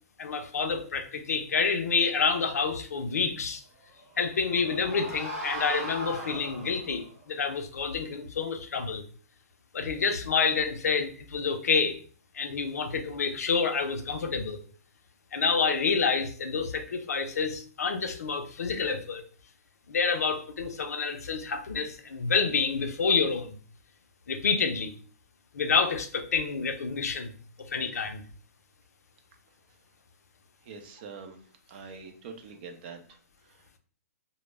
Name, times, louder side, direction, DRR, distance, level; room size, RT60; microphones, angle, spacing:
voice 1, 0.2-3.6 4.2-9.0 9.7-12.0 12.3-14.6 15.3-19.2 19.9-23.6 24.3-24.9 25.5-27.3 27.6-28.2, left 5 dB, 80° left, 7 dB, 0.5 m, -28 dB
sound 1, 4.0-7.0, equal, 5° right, 0.8 m, -38 dB
voice 2, 30.6-31.4 31.7-33.8, right 5 dB, 40° right, 5 dB, 0.5 m, -45 dB
2.1 x 2.0 x 3.3 m, 0.44 s
hypercardioid pair, 145°, 8 cm